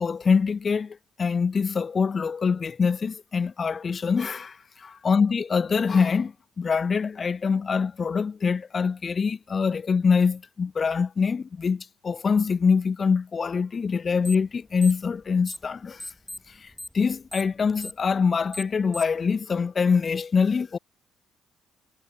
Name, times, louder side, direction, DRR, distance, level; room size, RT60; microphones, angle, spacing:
voice 1, 0.0-4.5 4.8-16.0 16.9-20.8, left 5 dB, 30° left, 1.6 m, -24 dB
sound 1, 14.2-14.5 14.8-15.7 16.0-19.2, left 1 dB, 5° left, 1.9 m, -38 dB
cardioid pair, 125°, 0 cm